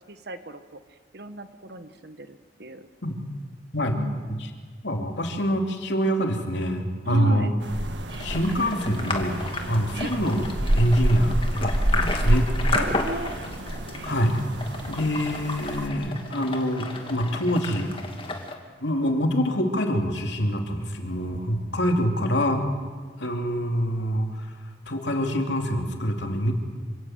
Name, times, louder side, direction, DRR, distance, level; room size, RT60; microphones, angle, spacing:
voice 1, 0.1-2.9 3.9-4.5 7.0-7.5 10.0-10.1 12.7-13.4, right 2 dB, 60° right, 10 dB, 1.4 m, -35 dB
voice 2, 4.8-7.5 8.2-9.4 9.7-10.4 10.7-12.5 14.0-14.4 14.9-17.9 18.8-22.7 23.2-24.5 24.9-26.5, equal, 75° left, 3 dB, 2.9 m, -25 dB
sound 1, 7.6-15.9, right 1 dB, 80° right, 1.7 m, -28 dB
sound 2, 8.1-18.5, left 2 dB, 30° left, 2.3 m, -33 dB
27.0 x 17.5 x 8.0 m, 1.5 s
head